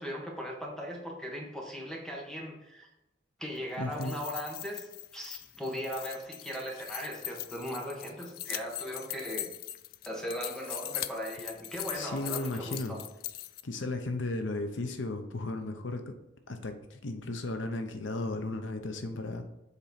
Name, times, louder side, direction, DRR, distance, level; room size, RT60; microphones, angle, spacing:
voice 1, 0.0-2.9 3.4-9.5 10.0-13.0, equal, 5° left, -1 dB, 1.4 m, -38 dB
voice 2, 3.8-4.2 11.9-13.0 13.6-16.1 16.5-19.5, left 2 dB, 85° left, 6 dB, 0.8 m, -35 dB
sound 1, 3.8-13.6, left 13 dB, 50° left, 0.3 m, -41 dB
7.1 x 4.4 x 4.0 m, 0.92 s
head